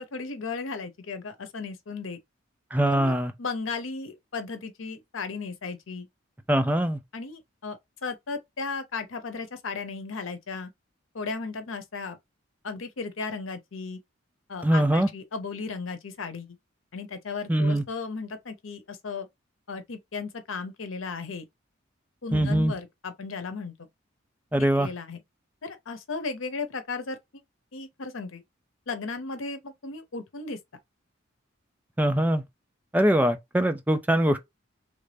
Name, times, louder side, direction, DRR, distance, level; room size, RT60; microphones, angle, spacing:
voice 1, 0.0-2.2 2.8-6.1 7.1-10.7 11.1-12.2 12.6-14.0 14.5-16.6 16.9-19.3 19.7-21.4 22.2-23.7 24.8-25.2 25.6-27.4 27.7-28.4 28.9-30.6, left 4 dB, 85° left, 0.8 m, -35 dB
voice 2, 2.7-3.3 6.5-7.0 14.6-15.1 17.5-17.8 22.3-22.7 24.5-24.9 32.0-32.4 32.9-34.4, right 1 dB, 10° right, 0.4 m, -22 dB
3.2 x 2.5 x 3.3 m
head